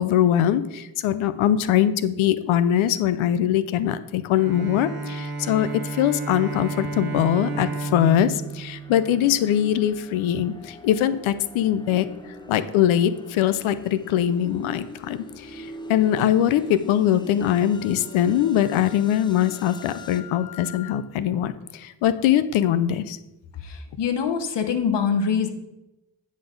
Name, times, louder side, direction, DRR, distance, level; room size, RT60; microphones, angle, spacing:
voice 1, 0.0-12.1 12.5-23.2, left 10 dB, 90° left, 13 dB, 0.5 m, -22 dB
Bowed string instrument, 4.3-9.7, right 3 dB, 50° right, 1.0 m, -32 dB
sound 1, 5.3-20.2, left 1 dB, 10° left, 0.7 m, -44 dB
Wind instrument woodwind instrument, 17.7-21.1, left 13 dB, 40° left, 1.2 m, -45 dB
voice 2, 23.6-25.5, left 6 dB, 60° left, 6 dB, 1.1 m, -24 dB
9.7 x 4.1 x 5.2 m, 0.97 s
cardioid pair, 65°, 47 cm